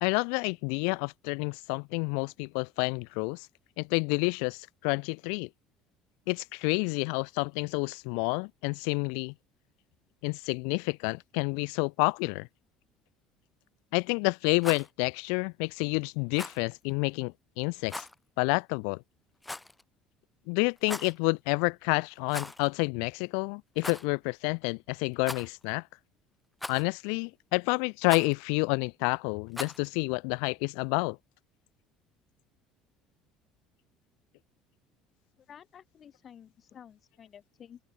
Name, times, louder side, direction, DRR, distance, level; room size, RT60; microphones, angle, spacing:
voice 1, 0.0-3.5 3.8-5.5 6.3-9.3 10.2-12.5 13.9-18.1 18.4-19.0 20.5-25.8 26.7-31.2, left 40 dB or more, 80° left, 0.3 m, -29 dB
Rattle, 14.5-14.9 16.3-16.6 17.9-18.1 19.4-19.8 20.8-21.2 22.3-22.7 23.0-23.1 23.8-24.1 25.2-25.7 26.6-27.0 28.0-28.3 29.5-29.9, left 2 dB, 10° left, 2.2 m, -39 dB
voice 2, 35.4-37.8, left 8 dB, 40° left, 6.2 m, -52 dB
open air
supercardioid pair, 105°, 0 cm